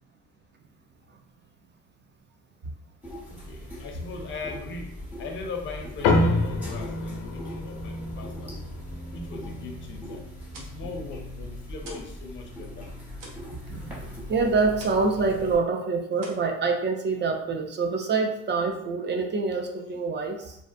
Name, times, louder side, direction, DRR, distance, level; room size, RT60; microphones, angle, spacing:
sound 1, 3.0-15.6, left 1 dB, 5° right, 0.9 m, -40 dB
voice 1, 3.3-8.6 9.1-10.2 10.6-12.9, left 4 dB, 35° left, 2 dB, 0.5 m, -40 dB
sound 2, 6.0-10.8, left 2 dB, 90° left, 0.5 m, -28 dB
sound 3, 10.5-12.2 12.5-15.2 15.5-15.8 16.1-17.2, right 2 dB, 70° right, 0.7 m, -48 dB
voice 2, 13.5-20.6, right 4 dB, 35° right, 3 dB, 0.4 m, -26 dB
2.5 x 2.1 x 2.5 m, 0.76 s
cardioid pair, 105°, 34 cm